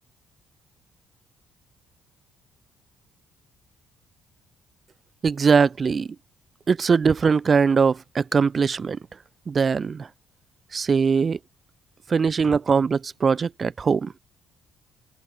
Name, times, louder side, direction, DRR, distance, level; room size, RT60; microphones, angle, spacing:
voice 1, 5.2-6.2 6.7-9.0 9.5-10.1 10.7-11.4 12.1-14.1, right 5 dB, 40° right, 1.8 m, -21 dB
open air
cardioid pair, 85°, 0 cm